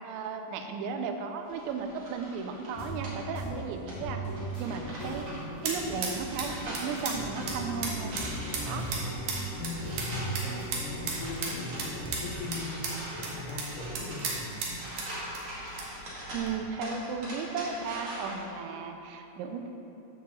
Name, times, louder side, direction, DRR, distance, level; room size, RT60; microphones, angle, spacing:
voice 1, 0.0-4.2 4.6-5.3 5.6-8.2 8.7-8.9 16.3-19.7, right 5 dB, 80° right, 5 dB, 3.0 m, -35 dB
sound 1, 1.4-18.4, equal, 45° right, 1.6 m, -44 dB
sound 2, 2.8-12.4, right 1 dB, 55° left, 2.6 m, -38 dB
sound 3, 4.9-16.5, right 3 dB, 65° right, 2.1 m, -38 dB
voice 2, 8.6-9.1 9.6-14.6, left 1 dB, 80° left, -6 dB, 1.8 m, -39 dB
10.5 x 4.8 x 7.0 m, 2.9 s
omnidirectional pair, 5.3 m